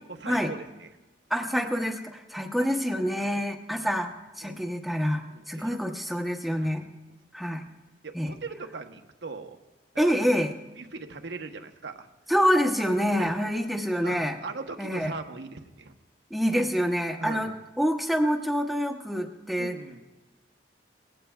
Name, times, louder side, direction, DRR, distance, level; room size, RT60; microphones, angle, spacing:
voice 1, 0.1-0.9 2.6-2.7 3.2-3.4 4.4-4.7 5.3-5.8 6.6-6.7 8.0-9.6 10.0-10.1 10.8-12.1 13.2-13.3 14.0-15.9 17.2-17.5 19.6-20.0, right 3 dB, 80° right, 6 dB, 1.0 m, -39 dB
voice 2, 1.3-4.1 4.4-6.8 7.3-7.6 8.1-8.3 10.0-10.5 12.3-14.4 14.8-15.1 16.3-19.8, equal, ahead, 4 dB, 0.8 m, -26 dB
19.0 x 15.5 x 2.3 m, 1.2 s
head